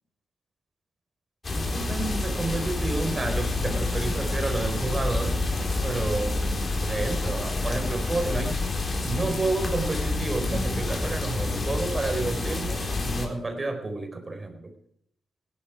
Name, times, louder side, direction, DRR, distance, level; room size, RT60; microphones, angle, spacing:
sound 1, 1.4-13.3, left 2 dB, 40° left, 4.3 m, -28 dB
voice 1, 1.5-5.4 5.8-8.6 9.0-14.7, right 2 dB, 30° right, 5 dB, 4.3 m, -30 dB
16.5 x 12.5 x 4.9 m, 0.68 s
supercardioid pair, 55°, 0 cm